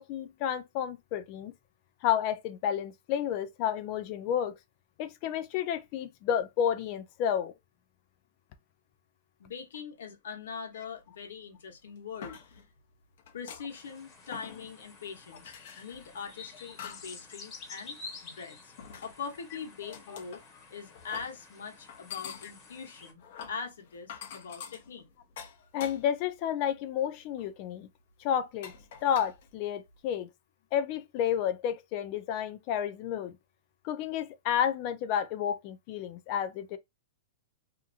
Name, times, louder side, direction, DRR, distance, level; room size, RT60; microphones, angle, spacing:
voice 1, 0.0-1.5 2.0-4.6 5.0-7.5 20.1-20.2 25.7-27.9 28.2-28.7 29.0-30.3 30.7-33.3 33.8-36.8, left 9 dB, 40° left, 0.5 m, -31 dB
voice 2, 9.4-12.6 13.3-18.7 19.0-20.4 20.7-23.2 23.5-25.1, left 6 dB, 80° left, 1.1 m, -42 dB
sound 1, 11.2-11.3 11.9-12.8 13.2-14.0 14.3-14.9 15.3-17.2 17.6-17.9 18.8-19.4 19.9-20.5 20.9-21.4 21.9-26.3 26.7-27.0 27.4-27.5 28.2-28.3 28.6-30.0, left 7 dB, 65° left, 0.9 m, -47 dB
sound 2, 13.7-23.1, left 4 dB, 25° left, 1.1 m, -50 dB
2.8 x 2.5 x 2.4 m
hypercardioid pair, 140°, 0 cm